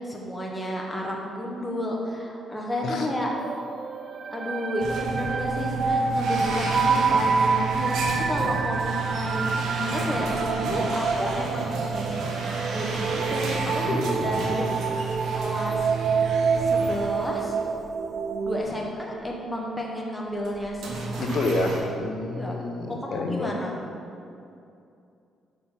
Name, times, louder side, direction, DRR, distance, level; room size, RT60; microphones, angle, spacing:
voice 1, 0.0-3.3 4.3-12.2 12.7-14.8 15.3-15.9 16.6-17.6 18.4-21.4 22.3-22.6 22.9-23.7, equal, 10° left, -2 dB, 1.1 m, -31 dB
sound 1, 3.4-18.6, right 5 dB, 50° right, 0.4 m, -27 dB
sound 2, 4.8-17.9 18.3-18.4 19.2-19.3 20.4-21.8, right 4 dB, 75° right, 1.2 m, -31 dB
voice 2, 13.8-14.6 21.2-23.5, left 2 dB, 65° left, 3 dB, 0.8 m, -29 dB
5.6 x 5.1 x 5.7 m, 2.6 s
cardioid pair, 90°, 0 cm